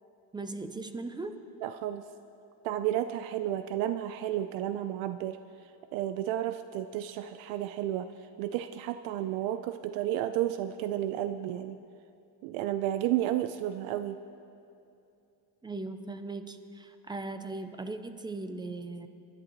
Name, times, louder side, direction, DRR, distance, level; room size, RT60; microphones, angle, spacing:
voice 1, 0.3-1.4 15.6-19.1, right 3 dB, 10° right, 9 dB, 0.3 m, -38 dB
voice 2, 1.6-2.0 2.6-5.4 5.9-8.1 8.4-11.8 12.4-14.2, right 12 dB, 70° right, 10 dB, 0.6 m, -32 dB
24.5 x 11.0 x 3.0 m, 2.6 s
cardioid pair, 120°, 48 cm